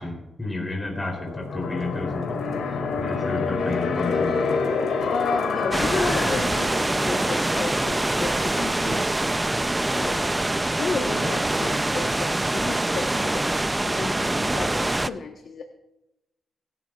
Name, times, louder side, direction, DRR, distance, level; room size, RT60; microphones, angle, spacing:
voice 1, 0.0-2.4 3.0-4.6, left 2 dB, 20° left, 0 dB, 3.3 m, -32 dB
sound 1, 1.1-11.8, left 4 dB, 90° left, 2.1 m, -29 dB
voice 2, 5.1-9.1 9.9-13.5 13.8-15.6, left 4 dB, 70° left, 4 dB, 1.1 m, -32 dB
sound 2, 5.7-15.1, right 2 dB, 15° right, 0.5 m, -24 dB
23.0 x 11.5 x 2.4 m, 0.93 s
cardioid pair, 85°, 0 cm